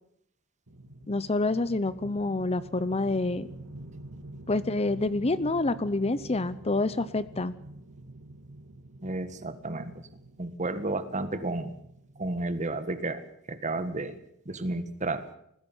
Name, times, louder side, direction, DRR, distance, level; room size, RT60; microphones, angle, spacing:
sound 1, 0.7-12.9, right 1 dB, 80° right, 2.9 m, -47 dB
voice 1, 1.1-3.5 4.5-7.5, left 2 dB, 30° left, 15 dB, 0.7 m, -27 dB
voice 2, 9.0-9.9 10.4-11.7 12.2-13.2 13.5-14.2 14.5-15.2, right 2 dB, 35° right, 11 dB, 1.7 m, -32 dB
20.0 x 15.5 x 9.0 m, 0.74 s
head